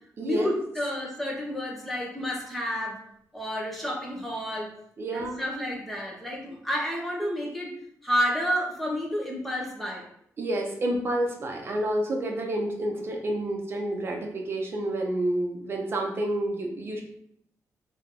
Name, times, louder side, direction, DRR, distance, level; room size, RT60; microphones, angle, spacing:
voice 1, 0.2-3.0 3.3-4.7 5.1-7.7 8.0-10.0, equal, ahead, -2 dB, 0.9 m, -30 dB
voice 2, 5.0-5.4 10.4-17.0, right 1 dB, 40° right, 1 dB, 0.7 m, -29 dB
3.4 x 2.9 x 3.7 m, 0.70 s
wide cardioid pair, 135°, 6 cm